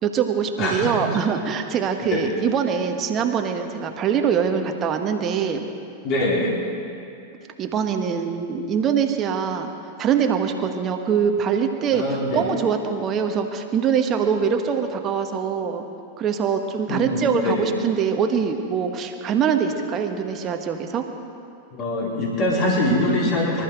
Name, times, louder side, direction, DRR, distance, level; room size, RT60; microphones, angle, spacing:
voice 1, 0.0-5.6 7.6-9.7 10.0-15.8 16.2-21.0, right 7 dB, 30° right, 5 dB, 1.4 m, -23 dB
voice 2, 0.6-1.1 2.1-2.2 6.0-6.6 11.9-12.5 16.9-17.7 21.7-23.6, left 1 dB, 40° left, -4 dB, 4.1 m, -23 dB
24.5 x 13.0 x 3.9 m, 2.7 s
figure-of-eight pair, 90°, 0 cm